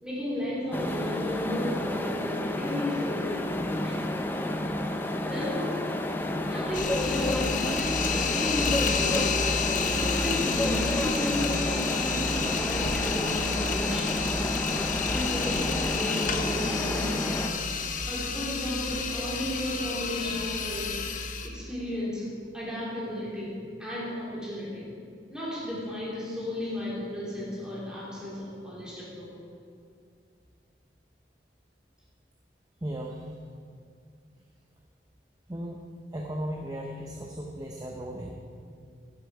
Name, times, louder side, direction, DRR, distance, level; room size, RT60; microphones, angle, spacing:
voice 1, 0.0-4.1 5.3-5.8 6.4-9.4 9.9-14.2 15.1-17.5 18.1-21.0 21.4-22.3 22.5-24.9 25.3-29.4, left 1 dB, 5° right, -7 dB, 3.4 m, -34 dB
sound 1, 0.7-17.5, left 1 dB, 10° left, 0.6 m, -30 dB
sound 2, 6.7-21.5, left 5 dB, 45° left, 0.8 m, -30 dB
voice 2, 32.8-33.3 35.5-35.8 36.1-38.3, right 1 dB, 20° right, 0 dB, 0.8 m, -36 dB
12.0 x 10.5 x 4.9 m, 2.3 s
head